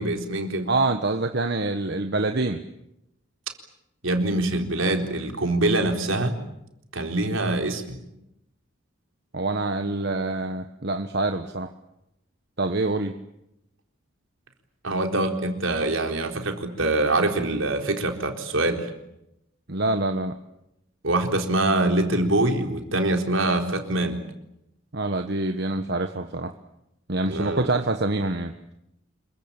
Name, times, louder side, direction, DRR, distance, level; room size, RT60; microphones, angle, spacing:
voice 1, 0.0-0.7 4.0-6.3 6.9-8.0 14.8-18.9 21.0-24.2 27.2-27.6, right 2 dB, 75° right, 4 dB, 4.0 m, -24 dB
voice 2, 0.7-2.6 9.3-11.7 12.6-13.1 19.7-20.3 24.9-26.5 27.1-28.5, right 2 dB, 55° right, 6 dB, 1.3 m, -26 dB
27.0 x 23.0 x 8.9 m, 0.85 s
head